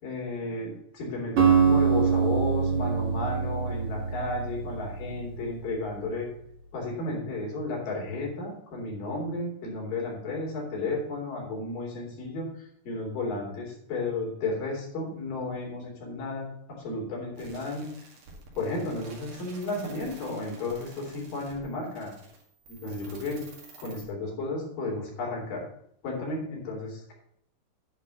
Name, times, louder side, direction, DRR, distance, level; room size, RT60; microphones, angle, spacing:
voice 1, 0.0-6.3 6.7-17.9 18.6-22.1 22.7-23.4 23.8-25.7 26.0-27.1, left 2 dB, 70° left, -2 dB, 4.6 m, -33 dB
Acoustic guitar, 1.4-5.5, right 6 dB, 50° right, 2.2 m, -24 dB
sound 1, 17.4-24.1, right 3 dB, 85° right, 3.9 m, -50 dB
10.5 x 4.5 x 6.9 m, 0.69 s
omnidirectional pair, 4.0 m